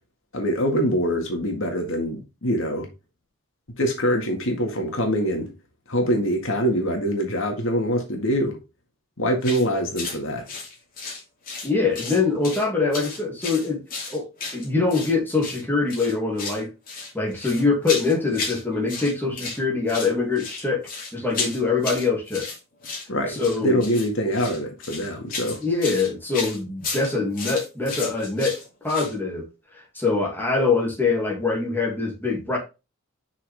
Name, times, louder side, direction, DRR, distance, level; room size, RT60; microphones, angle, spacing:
voice 1, 0.3-2.9 3.8-5.5 5.9-8.6 9.2-10.4 23.1-23.4 23.6-25.6, equal, 75° left, 1.8 m, -24 dB
sound 1, 9.4-9.6 9.9-10.2 10.5-11.7 11.9-12.6 12.9-15.1 15.4-15.6 15.9-16.6 16.9-18.6 18.9-19.6 19.9-29.1, left 4 dB, 40° left, 2.8 m, -33 dB
voice 2, 11.6-13.8 14.1-14.3 14.5-16.7 17.1-22.5 23.3-23.8 25.6-29.4 29.7-32.6, left 4 dB, 10° left, 2.4 m, -24 dB
6.1 x 5.8 x 3.5 m
head